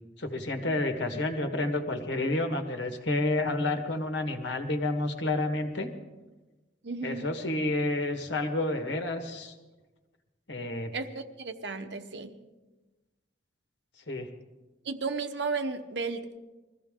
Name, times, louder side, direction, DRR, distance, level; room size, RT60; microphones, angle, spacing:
voice 1, 0.2-5.9 7.0-9.5 10.5-10.9 14.1-14.3, left 2 dB, 75° left, 6 dB, 1.6 m, -30 dB
voice 2, 6.8-7.3 10.9-12.3 14.9-16.4, right 4 dB, 65° right, 8 dB, 0.9 m, -34 dB
21.5 x 14.5 x 3.7 m, 1.2 s
head